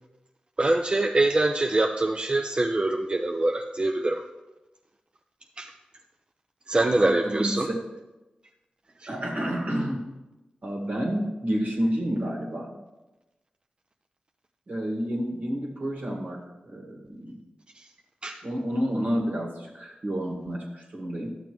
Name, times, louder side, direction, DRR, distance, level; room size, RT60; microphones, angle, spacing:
voice 1, 0.6-4.2 5.6-5.7 6.7-7.7 9.0-9.1 18.2-18.4, right 2 dB, 35° right, 4 dB, 0.5 m, -24 dB
voice 2, 7.0-7.8 9.1-10.1 10.6-12.7 14.7-17.4 18.4-21.3, equal, 65° right, -2 dB, 1.8 m, -30 dB
12.0 x 6.9 x 3.1 m, 1.0 s
cardioid pair, 55°, 3 cm